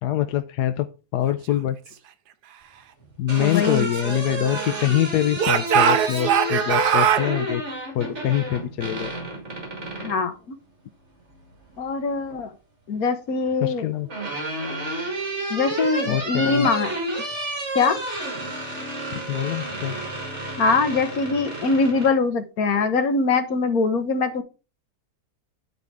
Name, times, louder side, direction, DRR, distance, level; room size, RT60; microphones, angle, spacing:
voice 1, 0.0-0.9 1.1-1.8 3.2-7.6 7.9-9.1 13.6-14.1 16.1-16.7 19.1-20.0, left 12 dB, 90° left, 1.2 m, -24 dB
sound 1, 3.0-10.2 11.7-12.4 13.6-22.1, right 2 dB, 45° right, 2.9 m, -31 dB
voice 2, 3.4-3.9 10.0-10.6 11.8-12.5 12.9-13.9 15.5-16.9 17.7-18.0 20.6-24.4, left 4 dB, 65° left, 1.6 m, -22 dB
Speech / Shout, 3.4-4.9 5.4-7.3, right 8 dB, 80° right, 1.4 m, -22 dB
10.5 x 4.9 x 4.8 m
omnidirectional pair, 1.7 m